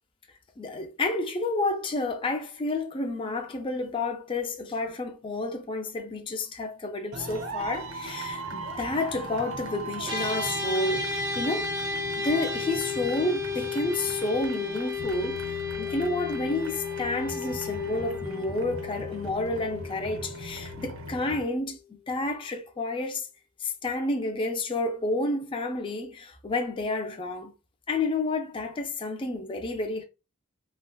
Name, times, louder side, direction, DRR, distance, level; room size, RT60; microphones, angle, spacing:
voice 1, 0.6-11.7 12.1-23.3 23.6-27.5 27.9-30.0, left 2 dB, 25° left, 0.4 m, -30 dB
sound 1, 7.1-21.4, right 2 dB, 85° right, 0.8 m, -39 dB
sound 2, 10.0-21.5, left 4 dB, 20° right, 0.6 m, -33 dB
3.4 x 2.1 x 2.2 m
head